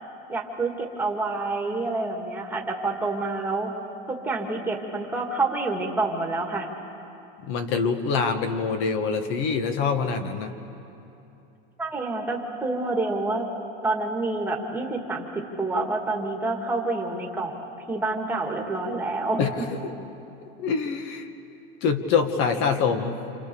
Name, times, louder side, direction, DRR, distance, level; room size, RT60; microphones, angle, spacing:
voice 1, 0.3-3.7 4.1-6.7 11.8-13.5 13.8-17.6 17.9-19.7, right 2 dB, 5° right, 0 dB, 1.9 m, -28 dB
voice 2, 7.4-10.5 19.4-19.8 20.6-21.3 21.8-23.2, left 5 dB, 45° left, 8 dB, 1.7 m, -25 dB
28.5 x 27.5 x 6.9 m, 2.9 s
cardioid pair, 180°, 29 cm